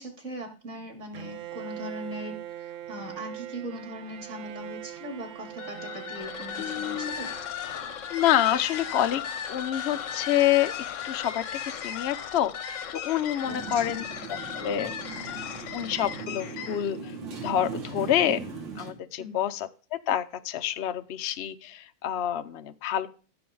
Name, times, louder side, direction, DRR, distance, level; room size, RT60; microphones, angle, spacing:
voice 1, 0.0-7.3 13.5-14.0 19.2-19.5, equal, 40° right, 1 dB, 3.4 m, -40 dB
Bowed string instrument, 1.1-8.1, right 12 dB, 65° right, 0.8 m, -42 dB
sound 1, 5.5-17.0, left 8 dB, 55° left, 0.9 m, -36 dB
voice 2, 6.6-7.1 8.1-10.7 11.0-15.5 15.7-17.1 17.4-18.4 18.8-23.1, left 11 dB, 85° left, 9 dB, 0.5 m, -28 dB
Motorcycle, 13.4-18.9, right 5 dB, 90° right, 2.6 m, -39 dB
15.5 x 7.0 x 3.9 m, 0.38 s
omnidirectional pair, 2.0 m